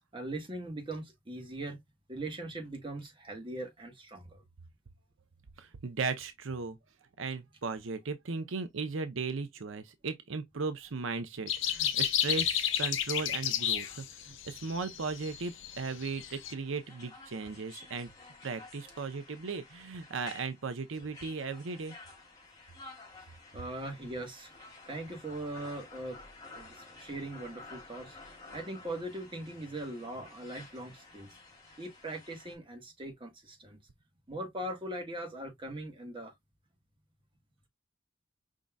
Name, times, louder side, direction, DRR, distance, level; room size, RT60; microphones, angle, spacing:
voice 1, 0.1-1.8 2.1-4.4 23.5-24.5 24.9-26.2 26.5-28.2 28.5-31.3 31.8-33.8 34.3-36.3, right 1 dB, 25° right, 1.5 m, -40 dB
voice 2, 5.6-6.8 7.2-18.1 18.4-22.0, right 4 dB, 80° right, 0.7 m, -37 dB
sound 1, 11.5-16.5, left 10 dB, 70° left, 0.7 m, -31 dB
sound 2, 13.8-32.5, left 3 dB, 20° left, 2.6 m, -53 dB
5.2 x 3.7 x 2.3 m
head